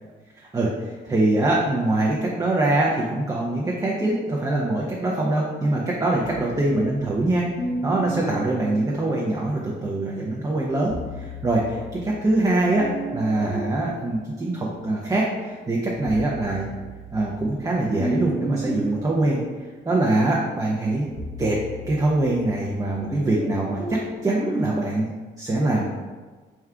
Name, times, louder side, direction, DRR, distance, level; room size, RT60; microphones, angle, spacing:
voice 1, 0.4-7.4 7.8-16.7 17.1-19.4 19.9-21.1 21.4-21.6 21.9-25.1 25.4-25.9, right 2 dB, 20° right, -3 dB, 0.6 m, -23 dB
sound 1, 6.2-9.7 10.7-15.1 15.6-24.8, right 1 dB, 5° left, 0.9 m, -35 dB
3.6 x 2.3 x 4.4 m, 1.4 s
cardioid pair, 90°, 20 cm